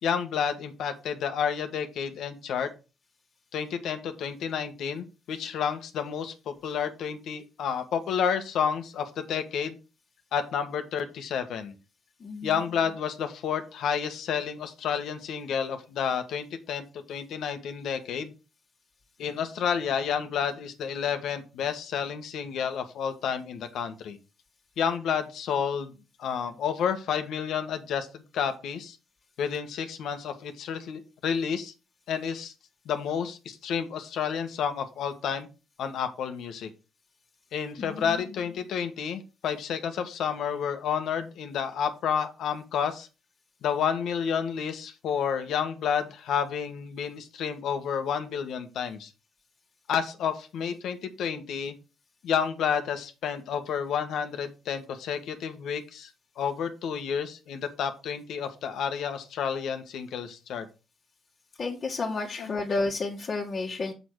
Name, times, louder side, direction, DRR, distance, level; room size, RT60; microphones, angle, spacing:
voice 1, 0.0-2.7 3.5-9.8 10.3-11.7 12.4-18.3 19.2-24.2 24.8-25.9 26.2-29.0 29.4-31.7 32.1-32.5 32.8-35.5 35.8-36.7 37.5-43.1 43.6-49.1 49.9-51.7 52.2-56.1 56.4-60.7 62.0-62.1 62.4-62.6, left 7 dB, 80° left, 8 dB, 1.5 m, -30 dB
voice 2, 12.2-12.6 37.8-38.2 61.6-63.9, left 3 dB, 45° left, -1 dB, 1.8 m, -31 dB
6.8 x 6.8 x 4.7 m, 0.30 s
cardioid pair, 95°, 0 cm